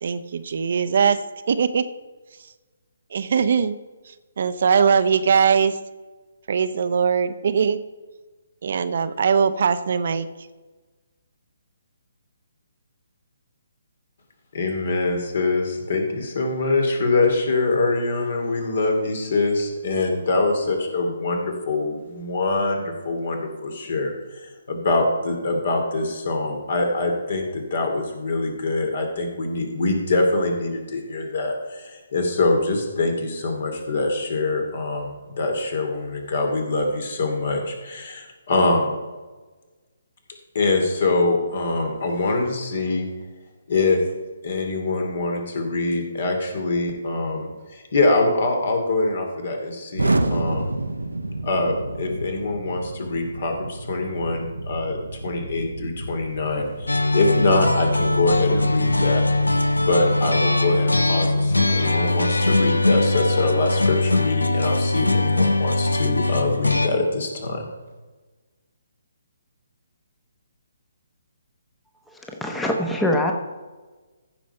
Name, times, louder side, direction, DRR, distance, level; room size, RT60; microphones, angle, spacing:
voice 1, 0.0-1.9 3.1-3.8 4.1-5.8 6.5-7.8 8.6-10.3, right 6 dB, 55° right, 12 dB, 0.6 m, -21 dB
voice 2, 14.5-38.9 40.5-43.1 43.7-44.0 44.4-50.7 51.4-55.0 55.2-59.2 59.9-67.7, left 2 dB, 55° left, 4 dB, 2.4 m, -24 dB
Explosion, 50.0-59.9, right 2 dB, 90° right, 0.8 m, -30 dB
sound 1, 56.9-66.9, left 2 dB, 90° left, 0.8 m, -21 dB
voice 3, 72.3-73.3, left 1 dB, 5° left, 2 dB, 0.9 m, -23 dB
15.0 x 5.1 x 5.5 m, 1.3 s
figure-of-eight pair, 140°, 0 cm